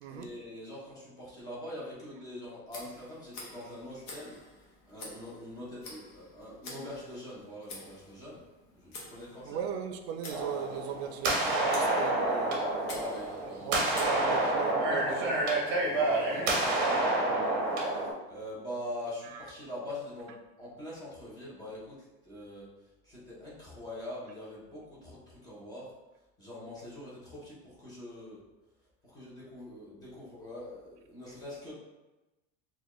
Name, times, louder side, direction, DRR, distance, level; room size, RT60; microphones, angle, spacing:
voice 1, 0.1-4.4 4.9-8.4 8.8-9.6 10.6-11.0 12.8-14.5 15.8-18.0 18.3-22.7 23.0-25.9 26.4-28.4 29.0-31.7, left 1 dB, 10° left, 0.7 m, -43 dB
Tick, 2.7-14.7, left 2 dB, 40° left, 0.9 m, -49 dB
voice 2, 9.5-12.6 13.6-15.4 19.2-19.4, right 8 dB, 75° right, 0.5 m, -38 dB
sound 1, 10.3-18.1, right 2 dB, 35° right, 0.7 m, -29 dB
4.1 x 2.3 x 3.0 m
cardioid pair, 180°, 32 cm